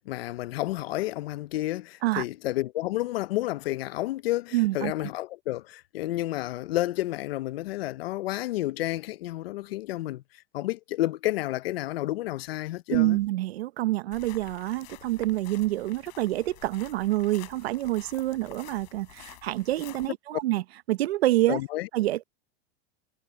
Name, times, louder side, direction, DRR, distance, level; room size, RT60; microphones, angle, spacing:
voice 1, 0.0-10.2 10.5-13.2 21.5-21.9, left 16 dB, 75° left, 0.7 m, -30 dB
voice 2, 4.5-4.9 12.9-20.6 20.9-21.6 21.9-22.2, right 16 dB, 85° right, 1.1 m, -27 dB
sound 1, 14.1-20.1, left 24 dB, 45° left, 5.1 m, -49 dB
supercardioid pair, 175°, 30 cm